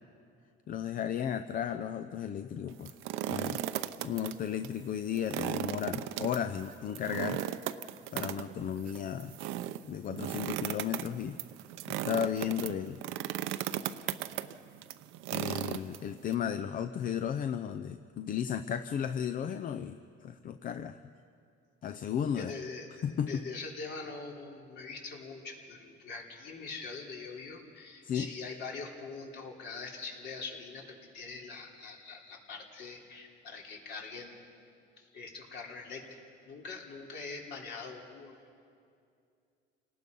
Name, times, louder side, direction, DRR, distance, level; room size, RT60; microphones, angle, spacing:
voice 1, 0.7-2.9 3.3-3.6 4.0-7.4 8.1-9.4 9.8-11.4 11.9-13.0 15.3-21.0 21.8-22.5 23.0-23.4 28.0-28.3, left 8 dB, 45° left, 9 dB, 0.6 m, -34 dB
sound 1, 2.7-4.3 4.6-4.7 5.1-16.3, right 13 dB, 90° right, 0.7 m, -36 dB
voice 2, 22.3-34.4 35.0-38.6, left 4 dB, 60° left, 0 dB, 3.5 m, -43 dB
28.5 x 18.5 x 5.4 m, 2.4 s
cardioid pair, 135°, 20 cm